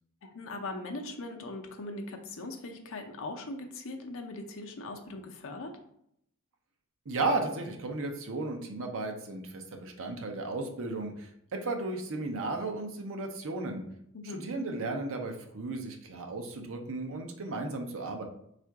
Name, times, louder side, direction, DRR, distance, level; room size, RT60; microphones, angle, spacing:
voice 1, 0.2-5.7 14.1-14.4, left 2 dB, 60° left, 3 dB, 0.6 m, -40 dB
voice 2, 7.1-11.3 11.6-13.8 14.2-18.2, right 2 dB, 60° right, 4 dB, 0.6 m, -34 dB
3.7 x 2.5 x 4.5 m, 0.73 s
head